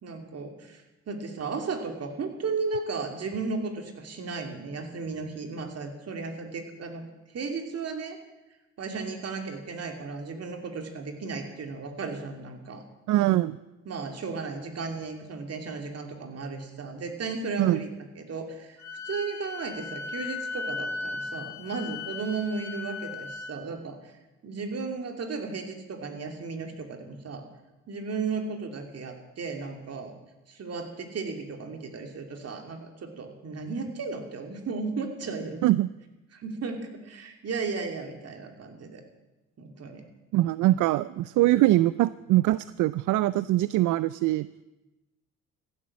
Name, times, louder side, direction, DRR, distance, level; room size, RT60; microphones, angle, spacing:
voice 1, 0.0-8.2 8.8-12.8 13.8-17.9 18.2-24.2 24.4-27.5 27.9-30.1 30.5-35.6 36.3-39.0 39.6-40.0, right 4 dB, 55° right, 5 dB, 2.7 m, -35 dB
voice 2, 13.1-13.6 17.6-17.8 35.6-35.9 40.3-44.5, right 16 dB, 80° right, 17 dB, 0.5 m, -23 dB
Wind instrument woodwind instrument, 18.8-23.5, left 4 dB, 70° left, 1.6 m, -37 dB
15.0 x 11.5 x 7.4 m, 1.0 s
cardioid pair, 90°, 30 cm